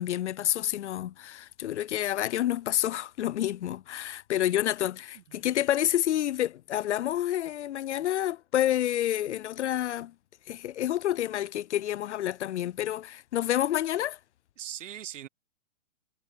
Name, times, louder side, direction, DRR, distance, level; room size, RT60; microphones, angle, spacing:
voice 1, 0.0-10.1 10.5-14.2, left 12 dB, 65° left, 0.5 m, -29 dB
voice 2, 14.6-15.3, right 10 dB, 75° right, 1.3 m, -41 dB
hypercardioid pair, 170°, 38 cm